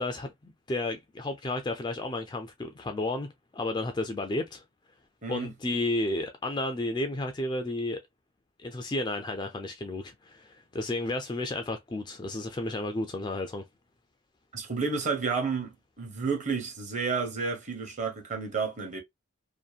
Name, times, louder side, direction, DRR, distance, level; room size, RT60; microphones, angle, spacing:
voice 1, 0.0-3.3 3.5-4.6 5.3-8.0 8.6-13.6, left 2 dB, 20° left, 0.3 m, -32 dB
voice 2, 14.5-19.0, right 5 dB, 35° right, 1.0 m, -31 dB
2.7 x 2.5 x 2.3 m
head